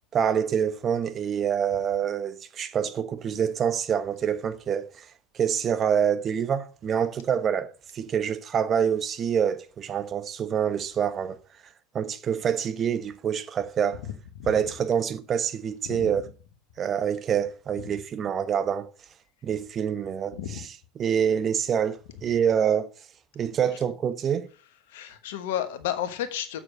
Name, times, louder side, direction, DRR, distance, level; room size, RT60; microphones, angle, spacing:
voice 1, 0.1-5.0 5.3-7.7 7.9-11.4 11.9-14.0 14.4-16.2 16.8-18.9 19.4-22.9 23.3-24.5, right 8 dB, 35° right, 1.0 m, -26 dB
voice 2, 20.3-20.7 24.9-26.6, left 10 dB, 65° left, 1.2 m, -32 dB
7.3 x 6.6 x 5.4 m
figure-of-eight pair, 70°, 0 cm